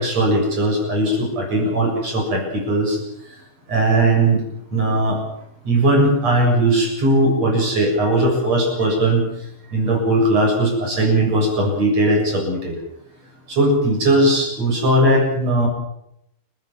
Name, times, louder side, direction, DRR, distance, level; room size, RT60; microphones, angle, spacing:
voice 1, 0.0-3.0 3.7-4.4 4.7-5.2 5.7-9.2 9.7-12.7 13.5-15.7, right 1 dB, 50° right, 2 dB, 8.7 m, -18 dB
30.0 x 15.5 x 7.4 m, 0.78 s
omnidirectional pair, 3.9 m